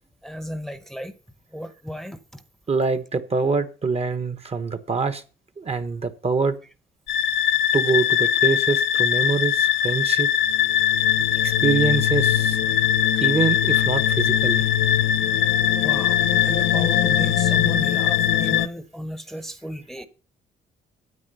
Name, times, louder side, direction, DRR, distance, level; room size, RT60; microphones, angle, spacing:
voice 1, 0.2-1.1 1.5-2.4 11.3-11.5 15.6-20.1, equal, ahead, 0.9 m, -34 dB
voice 2, 2.7-5.2 5.6-6.6 7.7-10.3 11.4-12.6 13.2-14.6, right 4 dB, 30° right, 1.0 m, -24 dB
sound 1, 7.1-18.7, left 10 dB, 70° left, 0.6 m, -20 dB
9.6 x 8.5 x 5.4 m
cardioid pair, 90°, 20 cm